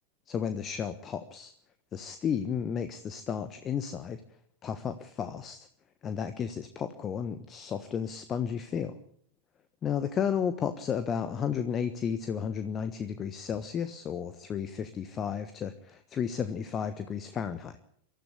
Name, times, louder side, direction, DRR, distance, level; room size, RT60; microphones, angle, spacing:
voice 1, 0.3-1.5 1.9-4.2 4.6-5.7 6.0-9.0 9.8-17.8, left 7 dB, 25° left, 11 dB, 1.3 m, -33 dB
24.0 x 14.0 x 8.5 m, 0.66 s
figure-of-eight pair, 90°, 0 cm